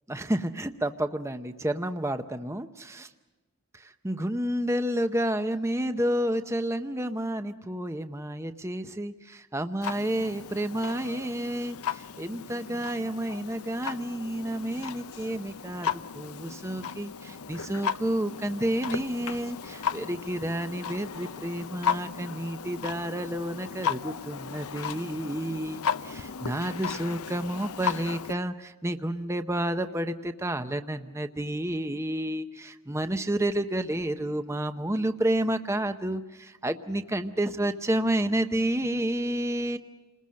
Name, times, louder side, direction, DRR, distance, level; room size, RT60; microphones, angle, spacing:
voice 1, 0.1-3.1 3.7-39.8, right 1 dB, 10° right, 9 dB, 0.7 m, -30 dB
Clock, 9.8-28.3, left 7 dB, 85° left, 0.7 m, -35 dB
29.0 x 20.0 x 6.4 m, 1.2 s
head